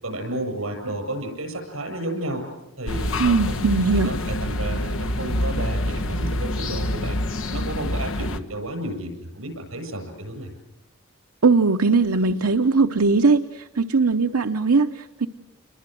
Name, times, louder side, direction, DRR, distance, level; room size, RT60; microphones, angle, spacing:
voice 1, 0.0-2.4 2.8-3.6 3.9-7.2 7.5-10.5, right 1 dB, 75° right, 5 dB, 7.7 m, -32 dB
sound 1, 2.9-8.4, left 1 dB, 65° left, 1.2 m, -26 dB
voice 2, 3.2-4.1 11.4-15.3, right 4 dB, 90° right, 7 dB, 0.8 m, -20 dB
29.0 x 22.0 x 7.8 m, 1.0 s
head